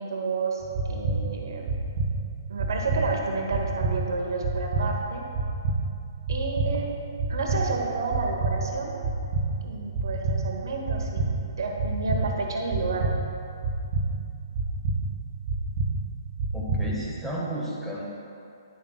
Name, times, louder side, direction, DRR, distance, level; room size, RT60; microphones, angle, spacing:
voice 1, 0.0-1.8 2.5-5.2 6.3-6.9 7.3-9.0 9.6-13.1, right 3 dB, 70° right, 1 dB, 1.0 m, -30 dB
sound 1, 0.6-17.2, right 3 dB, 45° right, 1.1 m, -29 dB
voice 2, 16.5-18.0, equal, 5° left, -6 dB, 1.3 m, -32 dB
10.0 x 7.0 x 2.3 m, 2.6 s
hypercardioid pair, 135°, 2 cm